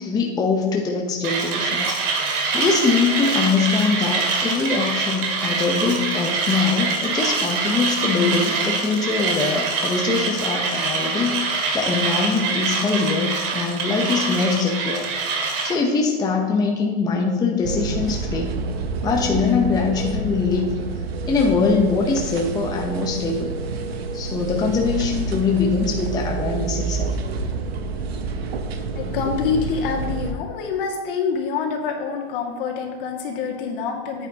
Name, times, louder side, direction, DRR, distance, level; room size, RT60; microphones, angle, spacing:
voice 1, 0.0-2.0 2.3-15.1 15.4-18.6 19.0-20.8 21.3-23.6 24.1-27.2, left 4 dB, 15° left, 1 dB, 0.7 m, -23 dB
Mechanisms, 1.2-15.8, right 4 dB, 60° right, 2.3 m, -24 dB
sound 1, 17.6-30.3, right 4 dB, 90° right, 1.0 m, -28 dB
voice 2, 28.9-34.3, left 6 dB, 60° left, 0 dB, 2.1 m, -26 dB
9.2 x 9.2 x 2.9 m, 1.3 s
hypercardioid pair, 135°, 30 cm